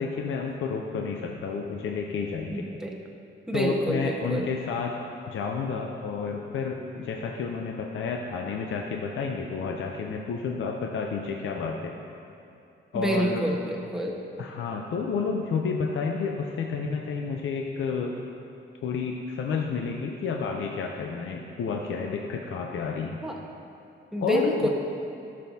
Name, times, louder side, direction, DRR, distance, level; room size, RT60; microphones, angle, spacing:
voice 1, 0.0-2.6 3.5-4.9 5.3-12.0 12.9-13.4 14.4-18.1 18.8-23.2 24.2-24.7, left 5 dB, 80° left, 1 dB, 0.6 m, -30 dB
voice 2, 2.5-2.9 3.5-4.5 12.9-14.2 23.2-23.3 24.1-24.7, equal, 5° right, -2 dB, 1.3 m, -27 dB
14.0 x 6.5 x 2.8 m, 2.6 s
cardioid pair, 80°, 20 cm